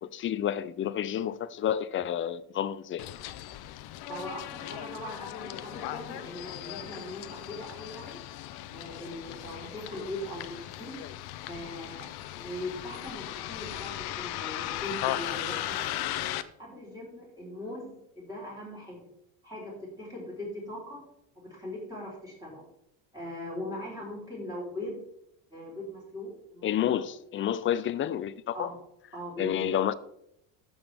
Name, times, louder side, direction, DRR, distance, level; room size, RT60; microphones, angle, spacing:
voice 1, 0.0-3.1 26.6-28.7 29.4-29.9, left 10 dB, 30° left, 0.4 m, -30 dB
Bus, 3.0-16.4, left 14 dB, 60° left, 0.7 m, -37 dB
voice 2, 4.1-8.2 8.7-11.0 11.5-16.2 16.6-19.0 19.4-21.1 21.4-22.6 23.1-25.0 25.5-26.9 28.5-28.7 29.1-30.0, left 1 dB, 10° right, 3.8 m, -40 dB
13.0 x 7.1 x 3.4 m
cardioid pair, 135°, 44 cm